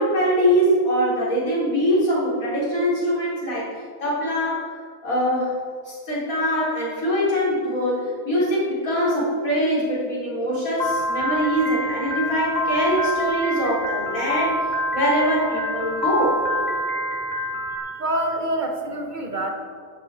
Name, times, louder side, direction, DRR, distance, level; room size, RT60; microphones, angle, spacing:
voice 1, 0.0-3.7 4.0-4.7 5.0-5.6 5.9-14.6 14.9-16.4, equal, 60° left, -6 dB, 4.2 m, -23 dB
Piano, 10.8-17.8, equal, 25° left, 1.7 m, -26 dB
voice 2, 18.0-19.5, right 1 dB, 35° right, 3 dB, 1.1 m, -26 dB
14.0 x 10.5 x 4.4 m, 2.2 s
omnidirectional pair, 1.7 m